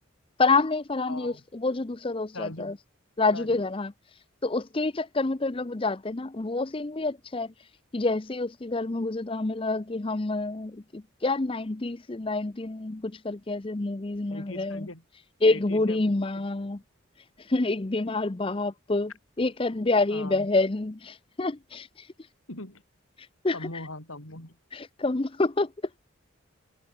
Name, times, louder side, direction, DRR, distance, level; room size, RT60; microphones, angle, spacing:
voice 1, 0.4-2.7 3.2-3.9 4.4-7.5 7.9-14.9 15.4-16.8 17.5-19.1 19.4-22.1 23.4-23.6 24.7-25.7, left 3 dB, 25° left, 0.6 m, -27 dB
voice 2, 1.1-1.4 2.3-2.8 3.3-3.6 14.3-15.0 15.4-16.5 20.1-20.5 22.5-22.8 23.5-24.6, left 2 dB, 85° left, 6.3 m, -41 dB
head